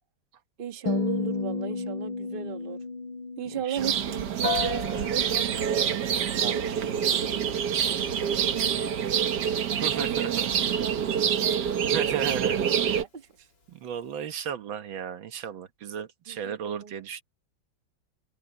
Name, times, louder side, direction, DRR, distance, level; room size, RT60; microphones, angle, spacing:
voice 1, 0.6-2.8 3.4-5.8 6.2-7.5 7.9-9.0 9.7-12.3 12.8-13.5 16.3-16.9, right 7 dB, 30° right, 1.3 m, -37 dB
sound 1, 0.9-5.2, left 3 dB, 85° left, 5.4 m, -33 dB
voice 2, 3.5-3.9 9.8-10.5 11.9-13.1 13.7-17.2, right 8 dB, 80° right, 1.9 m, -35 dB
sound 2, 3.8-13.0, right 8 dB, 60° right, 1.7 m, -26 dB
Piano, 4.4-14.2, left 3 dB, 60° left, 3.7 m, -41 dB
omnidirectional pair, 2.1 m